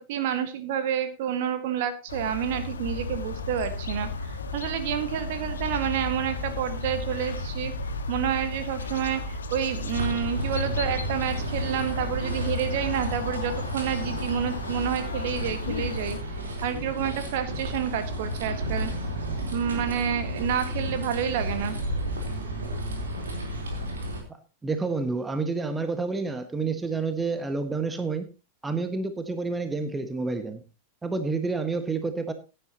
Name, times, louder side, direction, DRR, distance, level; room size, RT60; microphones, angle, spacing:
voice 1, 0.0-7.7 8.1-16.2 16.6-18.9 19.5-21.8, right 9 dB, 50° right, 9 dB, 1.7 m, -29 dB
sound 1, 2.1-16.2, left 3 dB, 70° left, 1.6 m, -34 dB
sound 2, 9.9-24.2, equal, 70° right, 3.8 m, -32 dB
voice 2, 24.6-28.3 28.6-30.6 31.0-32.3, right 4 dB, 10° right, 8 dB, 1.5 m, -29 dB
16.0 x 10.5 x 3.0 m, 0.30 s
figure-of-eight pair, 90°, 0 cm